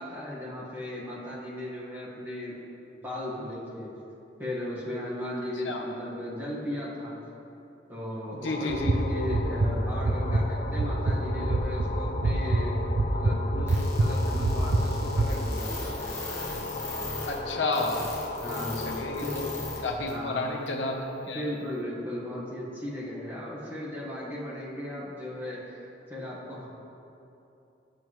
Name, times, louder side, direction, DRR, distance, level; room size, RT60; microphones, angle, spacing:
voice 1, 0.0-2.6 3.0-3.9 4.4-7.2 7.9-12.8 13.1-16.0 18.4-19.4 20.1-20.4 21.2-26.7, left 1 dB, 10° right, -7 dB, 1.5 m, -36 dB
voice 2, 8.4-8.9 17.3-18.0 18.8-19.5 19.8-21.4, left 2 dB, 80° left, 2 dB, 0.9 m, -31 dB
sound 1, 8.5-19.9, left 3 dB, 45° left, 0.4 m, -37 dB
sound 2, 8.7-15.2, right 2 dB, 85° right, 0.6 m, -27 dB
sound 3, 13.7-19.8 20.1-20.2 20.7-20.8, left 2 dB, 15° left, 1.3 m, -38 dB
8.9 x 7.6 x 3.1 m, 2.9 s
head